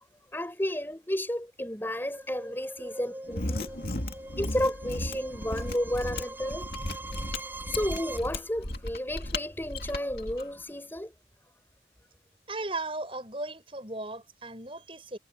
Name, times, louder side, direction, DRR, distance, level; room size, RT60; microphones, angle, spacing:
voice 1, 0.3-3.8 4.4-11.1, left 1 dB, 10° left, 4.0 m, -32 dB
sound 1, 2.2-8.2, right 2 dB, 10° right, 4.3 m, -43 dB
Mechanisms, 3.2-10.4, left 2 dB, 60° left, 2.7 m, -35 dB
voice 2, 12.5-15.2, right 2 dB, 30° right, 6.9 m, -36 dB
head